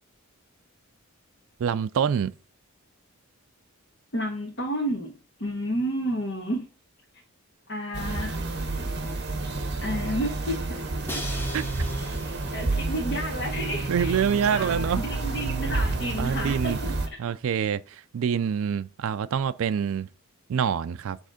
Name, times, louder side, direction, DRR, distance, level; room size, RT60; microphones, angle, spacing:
voice 1, 1.6-2.3 11.5-11.6 13.9-15.0 16.2-16.8 17.2-20.1 20.5-21.2, right 7 dB, 70° right, 0.3 m, -26 dB
voice 2, 4.1-5.1 5.4-6.6 7.7-8.4 9.8-10.6 12.5-14.2 14.5-16.7, equal, 50° left, 1.4 m, -30 dB
sound 1, 7.9-17.1, right 2 dB, 50° right, 1.2 m, -30 dB
Crash cymbal, 11.1-13.1, left 1 dB, 10° left, 0.9 m, -39 dB
7.8 x 3.5 x 5.0 m
head